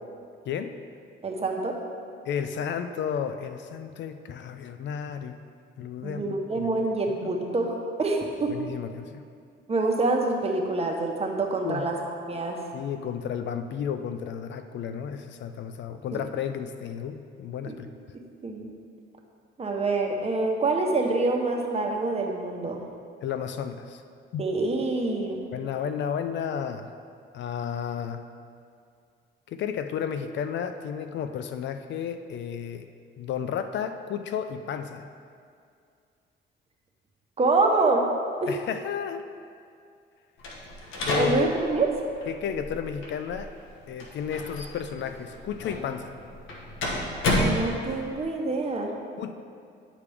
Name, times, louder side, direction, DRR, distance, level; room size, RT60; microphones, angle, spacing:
voice 1, 1.2-1.8 6.0-8.5 9.7-11.9 12.3-12.6 16.1-16.2 17.7-17.8 18.4-18.7 19.6-22.8 24.4-25.4 37.4-38.1 38.4-38.5 41.1-41.9 47.4-48.9, right 3 dB, 30° right, 1 dB, 1.0 m, -26 dB
voice 2, 2.3-5.4 5.8-6.8 7.2-7.3 8.5-9.2 11.6-11.9 12.7-17.9 23.2-24.0 24.3-24.5 25.5-26.9 27.3-28.2 29.5-32.9 33.2-35.1 38.5-39.2 41.0-41.5 42.3-43.5 43.9-46.2 49.2-49.3, left 8 dB, 65° left, 9 dB, 0.4 m, -32 dB
sound 1, 40.4-48.2, left 1 dB, 80° left, 1.2 m, -32 dB
9.7 x 5.1 x 3.5 m, 2.3 s
cardioid pair, 90°, 20 cm